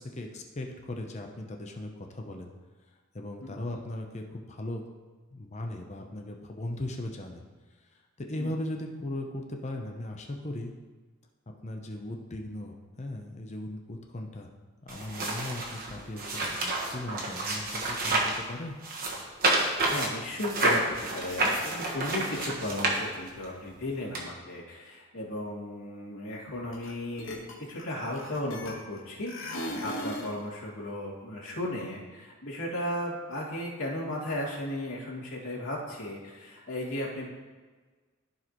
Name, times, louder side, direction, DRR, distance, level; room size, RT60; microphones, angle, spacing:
voice 1, 0.0-2.5 3.1-4.8 5.3-7.4 7.9-10.7 11.6-14.5 14.8-18.8, left 1 dB, 30° left, 3 dB, 0.7 m, -38 dB
sound 1, 14.9-18.4 18.8-23.4 24.1-24.2, right 2 dB, 45° right, 1.4 m, -29 dB
voice 2, 19.9-37.3, left 1 dB, 90° left, -7 dB, 2.4 m, -35 dB
sound 2, 26.7-26.9 27.2-29.0 29.3-30.4, equal, 65° left, 1.4 m, -37 dB
14.5 x 5.0 x 3.0 m, 1.4 s
head